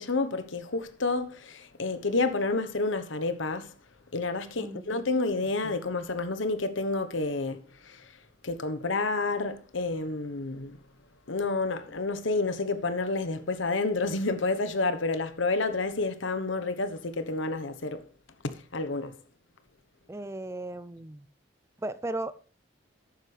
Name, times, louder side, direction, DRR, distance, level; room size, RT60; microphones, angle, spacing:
voice 1, 0.0-3.7 4.1-8.0 8.4-10.8 11.3-18.1 18.4-19.1, left 3 dB, 80° left, 1.1 m, -29 dB
voice 2, 4.6-4.9 20.1-21.3 21.8-22.3, right 2 dB, 15° right, 0.4 m, -36 dB
11.5 x 9.1 x 3.3 m
head